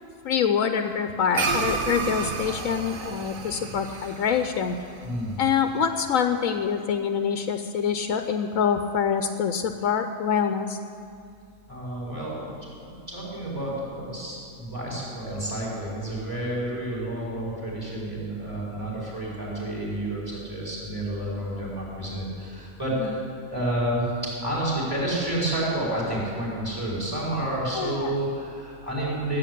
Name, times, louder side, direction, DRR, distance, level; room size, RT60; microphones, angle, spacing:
voice 1, 0.2-4.8 5.4-10.8 23.0-23.2 27.7-28.2, left 7 dB, 85° left, 7 dB, 1.1 m, -25 dB
sound 1, 1.3-6.0, right 4 dB, 80° right, 1.4 m, -31 dB
voice 2, 5.0-5.4 11.7-23.2 23.5-29.4, right 1 dB, 15° right, -5 dB, 5.3 m, -30 dB
16.0 x 8.6 x 10.0 m, 2.4 s
omnidirectional pair, 1.4 m